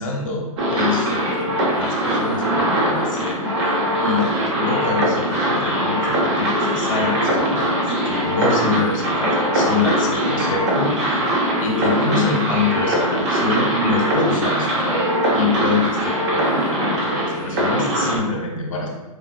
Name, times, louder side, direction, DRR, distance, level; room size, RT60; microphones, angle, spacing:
voice 1, 0.0-3.4 4.0-11.2 11.6-18.9, left 3 dB, 65° left, 0 dB, 1.0 m, -26 dB
sound 1, 0.6-18.2, equal, 50° right, 1.3 m, -21 dB
5.0 x 2.7 x 2.6 m, 1.1 s
figure-of-eight pair, 110°, 19 cm